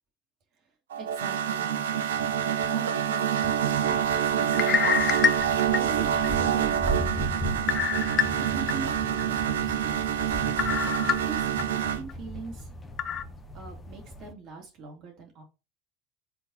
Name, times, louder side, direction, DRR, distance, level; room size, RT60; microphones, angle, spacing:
sound 1, 0.9-12.0, right 9 dB, 75° right, 0.6 m, -27 dB
voice 1, 1.0-5.2 5.7-7.9 8.3-10.7 11.1-12.7 13.5-15.4, right 4 dB, 50° right, 1 dB, 2.7 m, -42 dB
sound 2, 3.6-14.3, right 1 dB, 15° left, 1.3 m, -37 dB
sound 3, 4.5-6.3 6.7-6.8 7.7-8.7 9.2-9.3 10.6-11.6 12.1-12.2 13.0-13.2, left 8 dB, 40° left, 0.5 m, -26 dB
5.8 x 4.0 x 4.2 m, 0.29 s
figure-of-eight pair, 75°, 0 cm